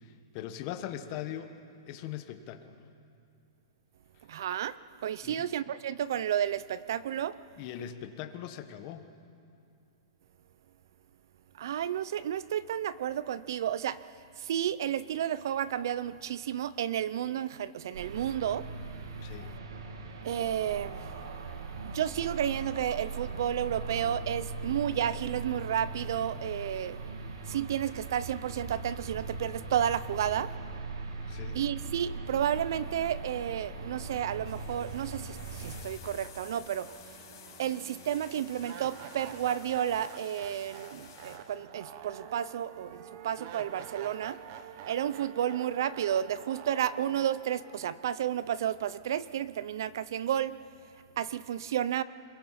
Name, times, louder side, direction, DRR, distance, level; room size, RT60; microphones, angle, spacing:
voice 1, 0.0-1.5 1.9-2.7 5.2-5.5 7.6-9.0 19.2-19.6 31.3-31.6, left 10 dB, 30° left, 8 dB, 1.2 m, -40 dB
voice 2, 4.3-7.4 11.6-14.0 14.4-18.7 20.2-21.1 21.9-27.0 27.4-30.5 31.5-36.9 37.6-44.4 44.9-50.6 51.2-52.0, right 10 dB, 50° right, 17 dB, 0.6 m, -32 dB
sound 1, 17.9-35.8, right 3 dB, 80° right, 2.5 m, -40 dB
sound 2, 34.4-41.4, left 8 dB, 45° left, 5.1 m, -52 dB
sound 3, 35.5-35.6 36.0-49.1, right 9 dB, 35° right, 1.1 m, -48 dB
27.5 x 21.5 x 5.8 m, 2.5 s
hypercardioid pair, 175°, 2 cm